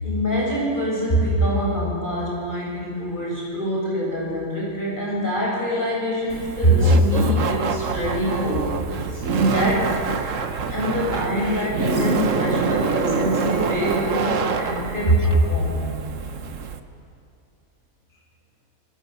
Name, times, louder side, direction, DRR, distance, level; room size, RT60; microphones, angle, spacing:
voice 1, 0.0-8.6 8.9-9.9 10.7-16.2, equal, 35° left, -4 dB, 7.4 m, -23 dB
Laughter, 6.3-16.8, right 5 dB, 65° right, 1.5 m, -26 dB
29.0 x 21.0 x 7.0 m, 2.5 s
omnidirectional pair, 1.5 m